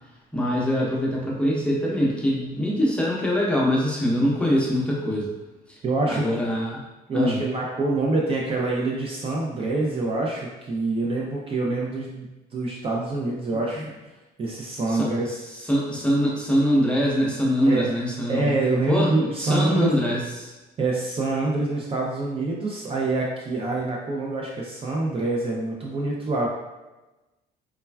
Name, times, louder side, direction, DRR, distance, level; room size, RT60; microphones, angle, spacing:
voice 1, 0.3-5.3 6.1-6.8 7.1-7.4 13.7-13.8 14.9-15.1 15.7-18.5 18.9-20.5, equal, 5° left, -5 dB, 0.7 m, -23 dB
voice 2, 5.8-6.3 7.1-14.1 14.4-15.4 17.6-17.9 18.3-20.0 20.8-26.5, right 2 dB, 35° right, -3 dB, 0.4 m, -26 dB
3.2 x 2.2 x 2.2 m, 1.1 s
cardioid pair, 110°, 17 cm